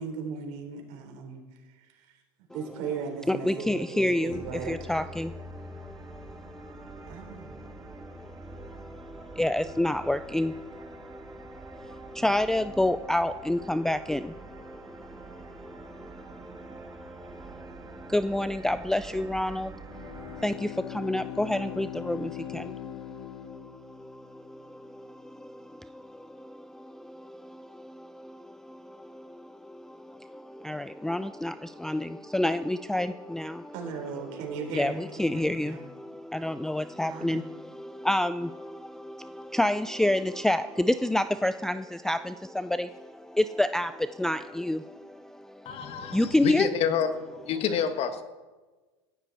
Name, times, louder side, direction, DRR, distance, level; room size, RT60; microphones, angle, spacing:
voice 1, 0.0-1.4 1.7-2.2 2.5-4.7 7.0-7.6 9.6-10.0 12.2-12.3 33.7-35.9 37.1-37.5, right 5 dB, 60° right, 3 dB, 4.0 m, -38 dB
voice 2, 3.3-33.7 34.3-34.4 34.7-46.7, left 1 dB, 5° left, 10 dB, 0.4 m, -30 dB
sound 1, 4.3-20.5, right 3 dB, 25° right, 2.0 m, -46 dB
Bowed string instrument, 19.7-24.5, left 13 dB, 65° left, 1.2 m, -41 dB
voice 3, 45.6-47.1 47.5-48.2, left 7 dB, 45° left, 8 dB, 1.6 m, -28 dB
17.5 x 15.0 x 4.2 m, 1.3 s
supercardioid pair, 110°, 14 cm